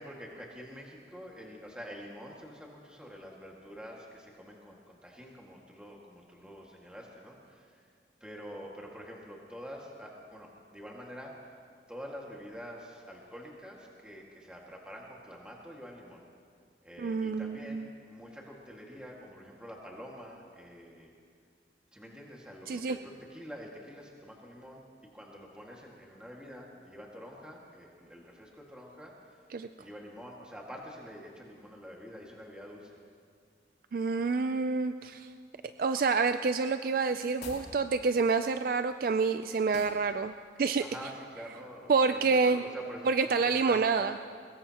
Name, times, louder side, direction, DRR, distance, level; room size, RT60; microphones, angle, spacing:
voice 1, 0.0-7.9 8.2-11.5 11.9-16.2 16.8-21.1 21.9-24.8 25.1-29.5 29.8-33.0 40.8-44.2, equal, 5° right, -2 dB, 1.8 m, -47 dB
voice 2, 17.0-17.9 22.7-23.0 29.5-29.7 33.9-35.3 35.8-40.8 41.9-42.6 43.1-44.1, right 4 dB, 50° right, 9 dB, 0.3 m, -28 dB
sound 1, 37.3-37.7 39.7-40.1, left 3 dB, 75° left, 3.0 m, -45 dB
22.5 x 21.0 x 2.9 m, 2.2 s
head